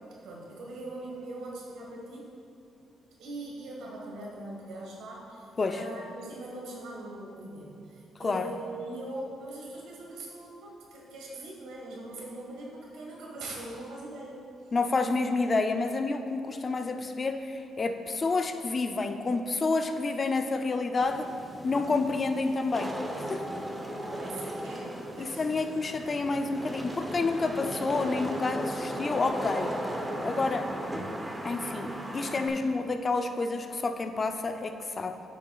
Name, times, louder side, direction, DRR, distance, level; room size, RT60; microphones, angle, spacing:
voice 1, 0.2-2.3 3.2-14.4 24.0-25.6, right 2 dB, 85° right, -2 dB, 1.5 m, -41 dB
voice 2, 14.7-21.3 21.6-23.4 25.2-29.7 30.2-30.7 31.4-35.2, left 3 dB, 35° left, 7 dB, 0.4 m, -29 dB
Wind / Rain, 21.0-32.5, right 1 dB, 15° right, 0.7 m, -36 dB
9.5 x 5.9 x 2.3 m, 2.6 s
cardioid pair, 90°, 0 cm